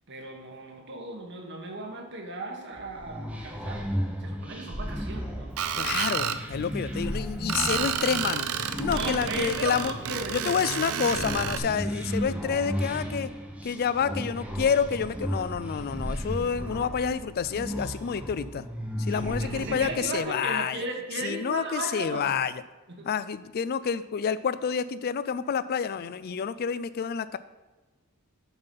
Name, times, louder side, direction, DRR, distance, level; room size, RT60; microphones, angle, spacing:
voice 1, 0.1-3.9 4.2-5.6 8.8-11.2 19.1-22.3 22.9-23.1, right 2 dB, 55° right, 2 dB, 1.4 m, -36 dB
sound 1, 2.7-20.2, equal, 5° right, 0.9 m, -35 dB
Screech, 5.6-6.4 7.5-11.6, right 8 dB, 80° right, 0.5 m, -30 dB
voice 2, 5.8-8.5 8.8-9.9 10.3-13.3 13.6-18.7 19.0-20.8 21.2-22.6 23.0-27.4, left 6 dB, 45° left, 15 dB, 0.4 m, -28 dB
7.0 x 5.8 x 5.3 m, 1.2 s
head